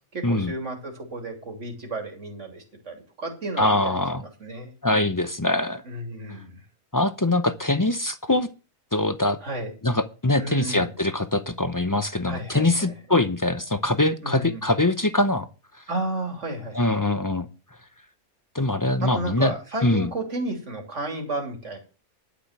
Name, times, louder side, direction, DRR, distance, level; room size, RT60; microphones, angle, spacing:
voice 1, 0.1-4.7 5.8-6.6 9.4-9.7 10.4-10.9 12.2-12.9 14.2-14.6 15.9-16.8 19.0-21.8, right 2 dB, 50° right, 3 dB, 3.4 m, -32 dB
voice 2, 3.6-4.2 4.8-5.8 6.9-8.5 8.9-9.4 9.8-15.5 16.7-17.5 18.5-19.5 19.8-20.1, left 2 dB, 30° left, 11 dB, 0.3 m, -23 dB
11.5 x 6.2 x 7.4 m, 0.34 s
omnidirectional pair, 1.6 m